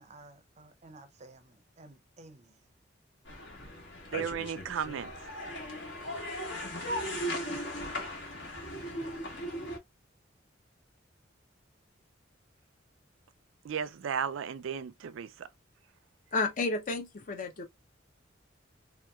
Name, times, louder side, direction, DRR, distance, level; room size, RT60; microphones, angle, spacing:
voice 1, 0.0-2.6, right 2 dB, 35° right, 0.5 m, -54 dB
sound 1, 3.3-9.8, equal, 70° left, 1.2 m, -37 dB
voice 2, 4.1-5.1 13.6-15.5, right 7 dB, 90° right, 0.4 m, -34 dB
voice 3, 16.3-17.7, left 3 dB, 45° left, 0.5 m, -31 dB
3.1 x 2.9 x 2.3 m
head